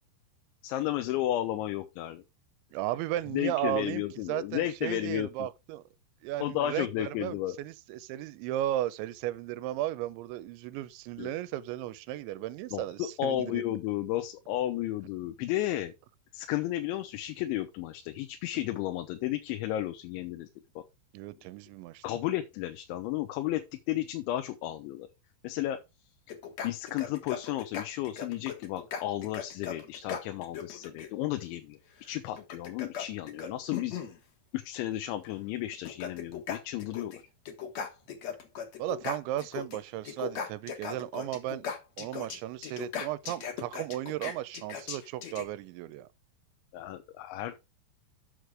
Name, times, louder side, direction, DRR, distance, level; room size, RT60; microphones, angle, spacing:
voice 1, 0.6-2.2 3.3-5.5 6.4-7.6 11.2-11.3 12.7-15.9 16.3-20.5 20.8-20.9 22.0-25.1 25.4-25.8 26.6-34.0 34.5-37.2 46.7-47.6, left 14 dB, 85° left, 3.2 m, -33 dB
voice 2, 2.7-4.0 4.3-5.8 6.2-13.6 21.1-22.0 38.8-41.7 42.0-46.1, right 14 dB, 85° right, 3.0 m, -35 dB
sound 1, 26.3-31.1 32.4-34.2 35.2-35.3 35.7-37.2 37.5-39.8 40.0-45.4, left 7 dB, 60° left, 1.8 m, -38 dB
7.8 x 6.5 x 4.8 m
omnidirectional pair, 5.3 m